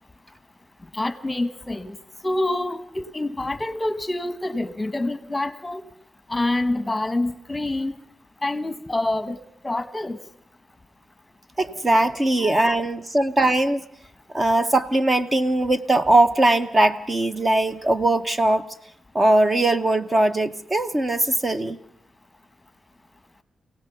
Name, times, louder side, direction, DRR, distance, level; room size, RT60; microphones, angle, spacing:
voice 1, 0.9-2.0 2.2-5.8 6.3-8.0 8.4-9.4 9.6-10.2 12.4-12.8, left 2 dB, 15° left, 12 dB, 1.2 m, -26 dB
voice 2, 11.6-13.8 14.3-18.7 19.1-21.8, right 1 dB, 25° right, 10 dB, 0.8 m, -20 dB
27.0 x 17.5 x 6.9 m, 0.74 s
wide cardioid pair, 120°, 0 cm